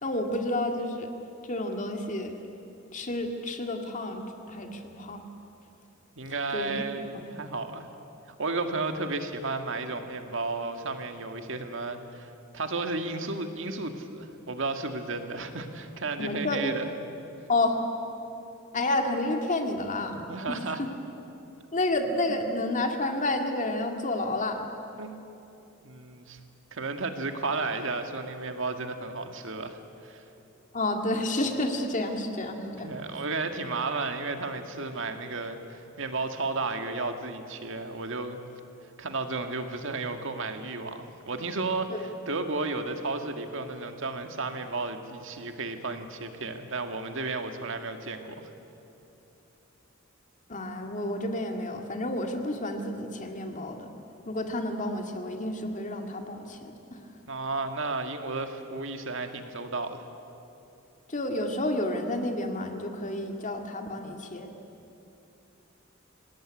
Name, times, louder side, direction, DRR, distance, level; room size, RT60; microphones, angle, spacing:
voice 1, 0.0-1.1 1.4-2.4 2.9-4.2 4.5-5.2 6.5-6.8 7.1-7.3 16.2-16.7 17.5-17.8 18.7-20.9 21.7-24.7 30.7-33.1 41.9-42.1 50.5-53.9 54.3-56.8 61.1-64.5, left 2 dB, 40° left, 4 dB, 2.1 m, -30 dB
voice 2, 6.2-7.9 8.3-16.9 20.3-20.8 25.0-25.4 25.8-26.4 26.7-29.8 30.0-30.2 32.8-38.4 39.0-48.5 57.3-60.0, right 3 dB, 65° right, 6 dB, 2.0 m, -33 dB
26.5 x 18.0 x 9.8 m, 2.9 s
head